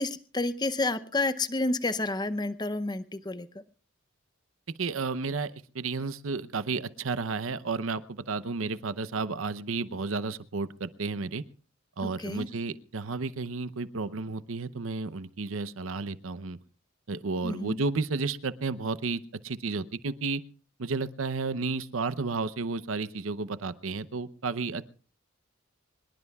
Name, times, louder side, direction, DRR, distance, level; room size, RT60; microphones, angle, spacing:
voice 1, 0.0-3.5 12.2-12.5 17.4-17.8, left 2 dB, 20° left, 12 dB, 0.6 m, -30 dB
voice 2, 4.8-11.4 12.0-16.6 17.1-20.4 20.8-24.9, right 4 dB, 85° right, 14 dB, 0.8 m, -32 dB
24.5 x 20.5 x 2.4 m, 0.38 s
head